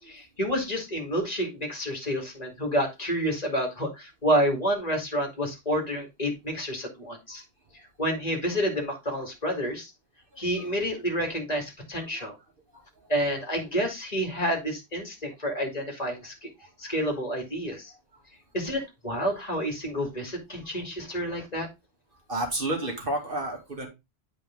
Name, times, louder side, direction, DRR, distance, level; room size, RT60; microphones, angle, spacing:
voice 1, 0.0-7.4 7.7-9.9 10.4-12.4 13.1-16.5 16.8-17.9 18.5-21.7, equal, 35° left, 2 dB, 2.6 m, -29 dB
voice 2, 22.3-23.9, right 1 dB, 55° right, 1 dB, 2.6 m, -31 dB
8.6 x 5.1 x 3.8 m, 0.23 s
omnidirectional pair, 1.1 m